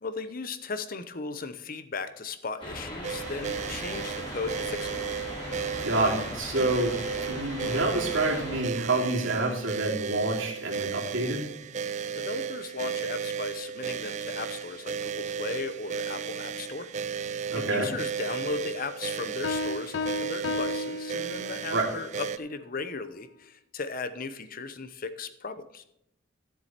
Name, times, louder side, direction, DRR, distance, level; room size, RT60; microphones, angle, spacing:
voice 1, 0.0-5.0 12.1-16.9 17.2-25.8, left 4 dB, 45° left, 11 dB, 0.8 m, -37 dB
sound 1, 2.6-8.6, equal, 25° left, 3.4 m, -38 dB
sound 2, 3.0-22.4, right 7 dB, 35° right, 0.3 m, -34 dB
voice 2, 5.8-6.9 7.2-11.4 17.5-17.9 21.7-21.9, right 2 dB, 70° right, -1 dB, 3.1 m, -28 dB
Piano, 19.4-21.8, left 3 dB, 65° left, 0.3 m, -33 dB
13.0 x 7.6 x 4.3 m, 0.82 s
head